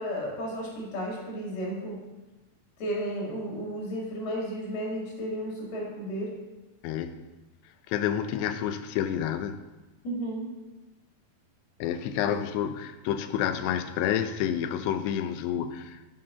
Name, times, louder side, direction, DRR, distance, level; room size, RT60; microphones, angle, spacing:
voice 1, 0.0-2.0 2.8-6.3 10.0-10.5 12.2-12.4, equal, 70° left, -2 dB, 3.9 m, -33 dB
voice 2, 6.8-7.2 7.9-9.6 11.8-16.1, left 9 dB, 85° left, 10 dB, 2.7 m, -29 dB
7.7 x 5.4 x 5.5 m, 1.1 s
omnidirectional pair, 4.8 m